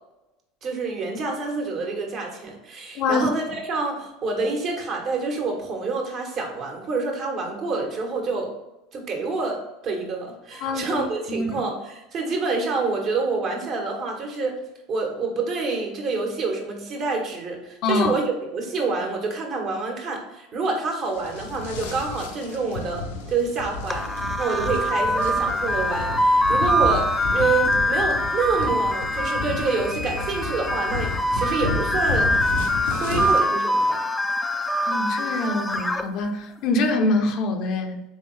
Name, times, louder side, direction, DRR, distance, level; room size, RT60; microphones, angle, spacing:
voice 1, 0.6-8.5 8.9-14.6 14.9-23.0 23.3-32.3 32.9-34.0, right 3 dB, 50° right, 1 dB, 1.3 m, -27 dB
voice 2, 2.9-3.3 10.6-11.6 17.8-18.2 34.8-38.0, left 2 dB, 55° left, 4 dB, 0.6 m, -25 dB
sound 1, 21.1-33.4, left 3 dB, 90° left, 0.7 m, -32 dB
sound 2, 23.9-36.0, equal, 10° left, 0.4 m, -24 dB
3.6 x 3.6 x 3.2 m, 0.96 s
hypercardioid pair, 90°, 0 cm